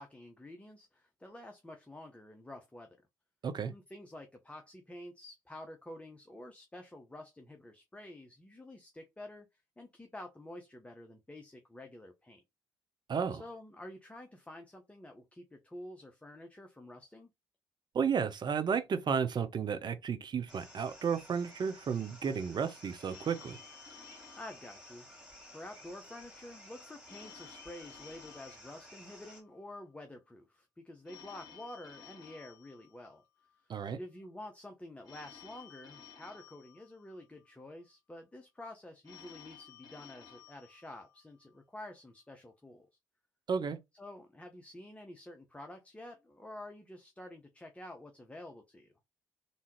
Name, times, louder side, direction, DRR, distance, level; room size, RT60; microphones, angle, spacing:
voice 1, 0.0-3.0 3.7-12.4 13.3-17.3 24.3-25.1 25.5-33.2 33.6-42.9 43.9-48.9, left 1 dB, 10° left, 0.8 m, -49 dB
voice 2, 13.1-13.4 17.9-23.6 33.7-34.0 43.5-43.8, right 6 dB, 45° right, 0.7 m, -33 dB
sound 1, 20.5-29.4, left 1 dB, 5° right, 2.6 m, -54 dB
Telephone, 23.1-25.6 27.1-29.5 31.1-33.5 35.0-37.5 39.0-41.5, left 7 dB, 40° left, 1.9 m, -55 dB
3.6 x 2.7 x 3.0 m
hypercardioid pair, 45°, 11 cm